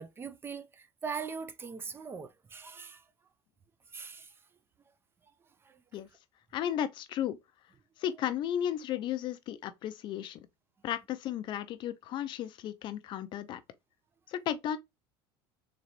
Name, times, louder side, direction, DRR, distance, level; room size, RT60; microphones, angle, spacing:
voice 1, 0.0-3.0 3.9-4.3 5.7-5.8, right 5 dB, 20° right, 0.4 m, -41 dB
voice 2, 6.5-7.4 8.0-10.5 10.8-13.6 14.3-14.8, left 10 dB, 45° left, 0.4 m, -34 dB
3.9 x 3.0 x 3.0 m
supercardioid pair, 125°, 11 cm